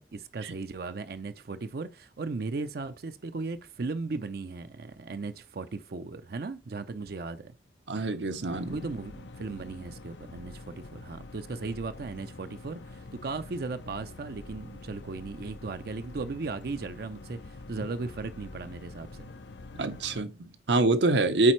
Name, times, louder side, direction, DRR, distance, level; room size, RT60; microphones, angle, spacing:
voice 1, 0.0-7.5 8.7-19.3, right 3 dB, 55° right, 0.5 m, -37 dB
voice 2, 7.9-8.8 19.8-21.5, right 2 dB, 80° right, 0.8 m, -25 dB
sound 1, 8.5-20.2, left 2 dB, 80° left, 0.6 m, -46 dB
8.5 x 4.1 x 3.1 m
head